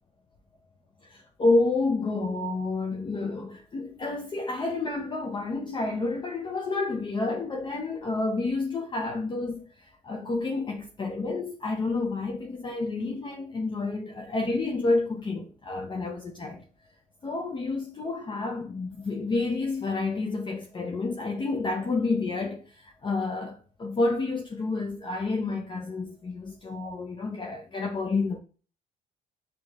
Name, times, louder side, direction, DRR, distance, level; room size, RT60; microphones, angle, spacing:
voice 1, 1.0-16.6 17.2-28.4, left 3 dB, 30° left, 0.6 m, -29 dB
6.4 x 3.0 x 2.4 m
cardioid pair, 110°, 17 cm